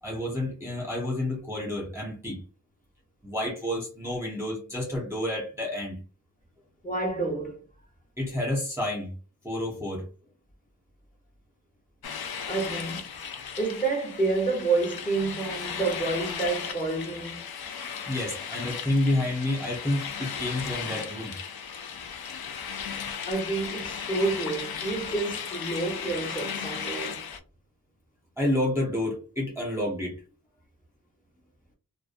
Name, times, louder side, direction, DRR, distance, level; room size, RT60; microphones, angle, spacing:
voice 1, 0.0-2.4 3.2-6.0 8.2-9.1 9.4-10.1 18.1-21.4 28.4-30.2, left 1 dB, 5° right, 0.6 m, -29 dB
voice 2, 6.8-7.6 12.5-13.0 13.6-17.4 23.2-27.2, right 3 dB, 20° left, 0.9 m, -29 dB
sound 1, 12.0-27.4, left 7 dB, 75° left, 0.5 m, -36 dB
2.5 x 2.2 x 2.4 m
wide cardioid pair, 65°, 38 cm